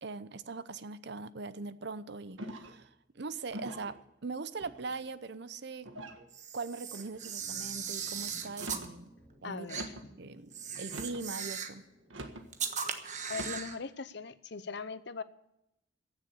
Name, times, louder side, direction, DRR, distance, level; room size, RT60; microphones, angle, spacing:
voice 1, 0.0-4.0 4.2-5.9 6.5-9.1 9.4-9.7 10.2-11.8, right 4 dB, 60° right, 15 dB, 0.7 m, -41 dB
sound 1, 2.4-2.8 3.5-4.0 4.6-5.1 5.8-6.3 6.9-7.3 8.5-9.0 9.7-10.1 10.8-11.3 12.1-12.5 13.3-13.7, right 1 dB, 90° right, 1.6 m, -44 dB
Camera, 6.3-8.9 9.7-9.9 10.5-11.8 12.5-13.8, right 7 dB, 40° right, 1.3 m, -38 dB
sound 2, 7.4-13.2, right 1 dB, ahead, 3.4 m, -59 dB
voice 2, 9.4-10.1 13.3-15.2, left 4 dB, 60° left, 14 dB, 0.7 m, -40 dB
15.5 x 7.3 x 8.4 m, 0.84 s
head